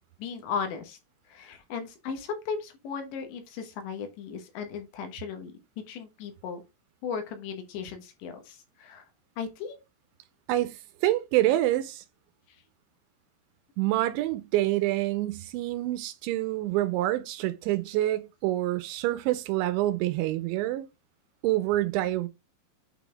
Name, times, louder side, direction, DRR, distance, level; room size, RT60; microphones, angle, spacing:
voice 1, 0.2-1.0 1.3-5.6 5.9-6.6 7.0-9.1 9.4-9.8, left 6 dB, 75° left, 3.4 m, -36 dB
voice 2, 10.5-12.0 13.8-20.9 21.4-22.3, right 15 dB, 85° right, 2.8 m, -27 dB
8.9 x 4.1 x 3.4 m
omnidirectional pair, 5.5 m